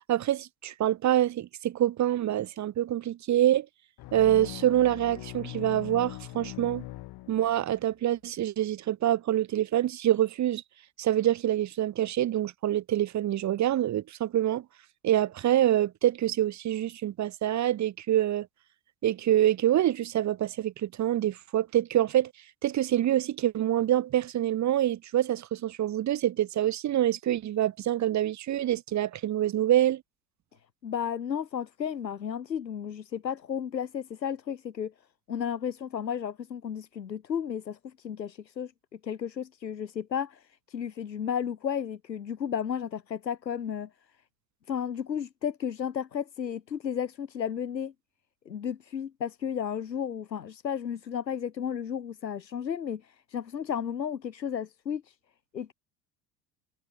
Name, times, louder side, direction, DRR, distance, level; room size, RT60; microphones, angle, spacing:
voice 1, 0.1-3.7 4.1-6.8 7.3-10.6 11.0-14.6 15.0-18.5 19.0-22.3 22.6-30.0, right 12 dB, 35° right, 1.4 m, -26 dB
sound 1, 4.0-7.8, left 18 dB, 45° left, 1.9 m, -41 dB
voice 2, 30.8-34.9 35.3-43.9 44.7-47.9 48.5-55.2 55.5-55.7, left 8 dB, 90° left, 0.7 m, -33 dB
figure-of-eight pair, 65°, 50 cm